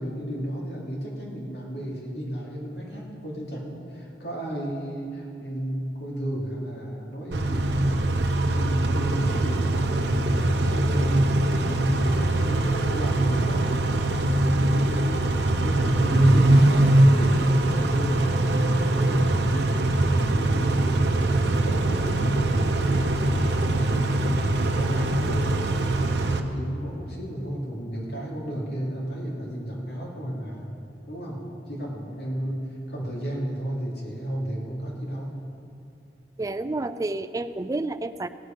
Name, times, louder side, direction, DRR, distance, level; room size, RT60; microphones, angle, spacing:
voice 1, 0.0-8.1 8.5-11.3 11.6-13.7 14.1-19.3 19.9-25.5 26.2-30.7 31.1-35.4, equal, 65° left, -4 dB, 2.5 m, -33 dB
Car / Idling / Accelerating revving vroom, 7.3-26.4, right 1 dB, 75° right, 0.8 m, -22 dB
voice 2, 36.4-38.3, right 2 dB, 20° right, 11 dB, 0.3 m, -29 dB
17.0 x 8.3 x 5.1 m, 2.8 s
head